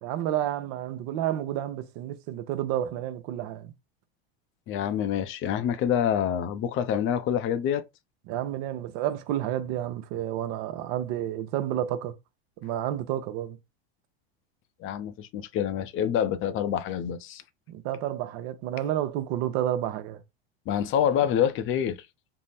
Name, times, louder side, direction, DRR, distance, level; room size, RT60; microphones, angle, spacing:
voice 1, 0.0-3.7 8.3-12.2 12.6-13.6 17.7-20.2, right 12 dB, 60° right, 0.7 m, -30 dB
voice 2, 4.7-7.9 14.8-17.4 20.7-22.0, left 9 dB, 40° left, 0.6 m, -26 dB
3.6 x 2.1 x 4.1 m
supercardioid pair, 110°, 30 cm